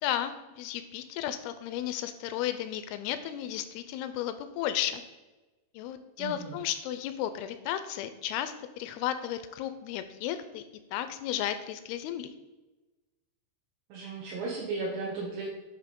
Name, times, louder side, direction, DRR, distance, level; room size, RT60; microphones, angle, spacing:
voice 1, 0.0-5.0 5.7-10.6 10.9-12.3, left 11 dB, 80° left, 10 dB, 2.4 m, -34 dB
voice 2, 6.2-6.6 13.9-15.4, right 3 dB, 65° right, -5 dB, 2.7 m, -35 dB
9.7 x 3.6 x 5.2 m, 1.1 s
omnidirectional pair, 4.6 m